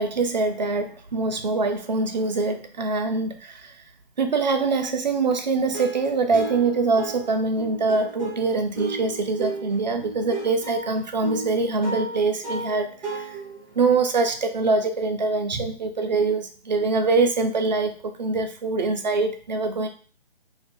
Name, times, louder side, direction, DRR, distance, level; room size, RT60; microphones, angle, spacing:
voice 1, 0.0-3.7 4.2-13.4 13.7-19.9, right 3 dB, 45° right, 6 dB, 0.5 m, -24 dB
sound 1, 5.7-13.8, right 3 dB, 5° right, 0.7 m, -34 dB
2.5 x 2.4 x 3.5 m, 0.41 s
figure-of-eight pair, 155°, 32 cm